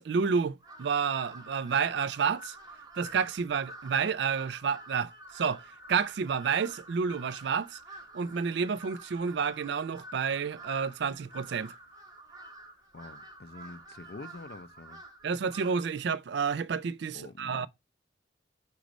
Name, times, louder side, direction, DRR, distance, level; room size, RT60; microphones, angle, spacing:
voice 1, 0.0-2.5 3.0-5.6 5.9-7.8 8.1-11.7 15.2-17.7, right 6 dB, 65° right, 0.4 m, -30 dB
Crow, 0.6-16.0, right 2 dB, 20° right, 0.9 m, -49 dB
voice 2, 12.9-15.0 17.1-17.7, left 3 dB, 55° left, 0.5 m, -46 dB
6.3 x 3.0 x 5.1 m
head